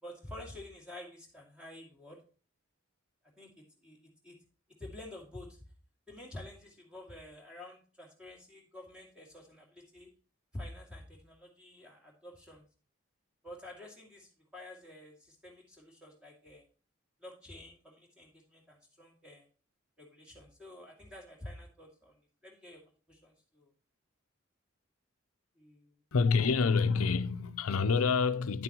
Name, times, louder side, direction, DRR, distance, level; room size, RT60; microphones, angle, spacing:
voice 1, 0.0-2.2 3.4-4.0 4.2-4.4 4.8-5.6 6.1-10.1 10.5-12.6 13.4-16.7 17.2-19.5 20.0-22.8 23.1-23.7 25.6-26.0, left 1 dB, 5° right, 2.3 m, -49 dB
voice 2, 26.1-28.6, left 5 dB, 90° left, 0.6 m, -27 dB
9.7 x 7.8 x 3.0 m
head